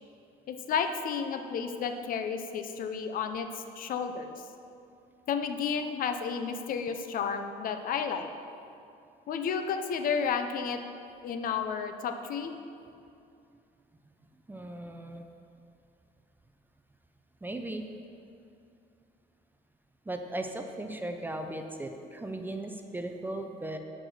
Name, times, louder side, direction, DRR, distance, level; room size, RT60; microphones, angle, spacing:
voice 1, 0.5-4.3 5.3-8.3 9.3-10.8 11.2-12.5, left 6 dB, 55° left, 7 dB, 0.6 m, -32 dB
voice 2, 14.5-15.2 17.4-17.8 20.1-23.8, right 1 dB, 10° right, 5 dB, 0.5 m, -37 dB
6.2 x 4.8 x 6.4 m, 2.6 s
cardioid pair, 110°, 17 cm